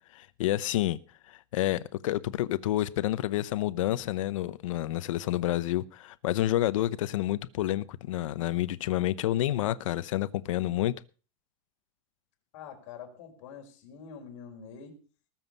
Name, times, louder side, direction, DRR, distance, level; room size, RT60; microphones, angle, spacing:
voice 1, 0.1-1.0 1.3-10.9, left 14 dB, 85° left, 16 dB, 0.9 m, -29 dB
voice 2, 12.5-15.0, left 6 dB, 65° left, 2 dB, 5.0 m, -45 dB
20.0 x 7.4 x 5.4 m, 0.38 s
supercardioid pair, 160°, 16 cm